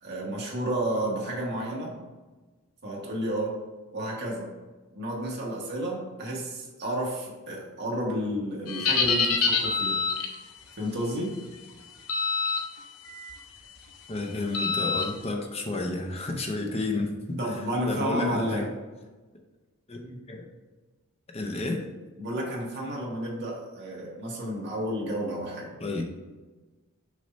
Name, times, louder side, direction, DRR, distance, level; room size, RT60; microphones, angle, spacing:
voice 1, 0.0-1.9 2.8-3.5 3.9-4.5 4.9-10.0 10.8-11.3 17.4-18.7 22.2-25.7, right 1 dB, 50° right, -3 dB, 1.5 m, -31 dB
sound 1, 8.7-10.4 12.1-12.6 13.1-13.3 14.5-15.1, left 5 dB, 90° left, 0.9 m, -25 dB
voice 2, 14.1-18.7 19.9-20.4 21.3-21.9 25.8-26.1, left 2 dB, 30° left, 2 dB, 0.7 m, -31 dB
6.3 x 2.8 x 5.2 m, 1.2 s
head